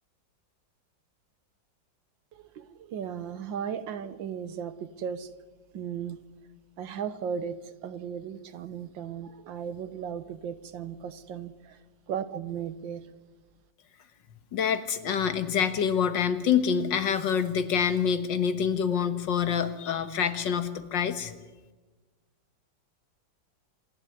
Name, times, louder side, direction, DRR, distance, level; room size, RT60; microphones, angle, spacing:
voice 1, 2.3-5.3 5.7-6.2 6.8-7.6 7.8-11.8 12.1-13.0, right 8 dB, 80° right, 13 dB, 1.8 m, -36 dB
voice 2, 14.5-21.3, left 7 dB, 75° left, 10 dB, 2.0 m, -26 dB
26.5 x 11.0 x 9.6 m, 1.2 s
omnidirectional pair, 2.0 m